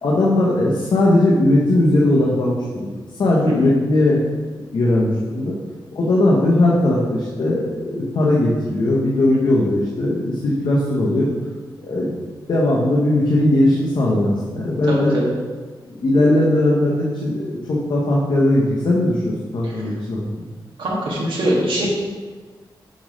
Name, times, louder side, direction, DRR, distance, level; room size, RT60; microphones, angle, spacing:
voice 1, 0.0-2.9 3.2-4.3 4.7-5.5 5.9-11.3 11.8-12.1 12.5-15.1 15.9-20.2, left 1 dB, 70° left, -4 dB, 1.0 m, -18 dB
voice 2, 14.8-15.3 19.6-19.9 20.8-21.9, right 1 dB, 85° right, -4 dB, 1.7 m, -23 dB
7.8 x 3.2 x 5.0 m, 1.4 s
wide cardioid pair, 100°, 8 cm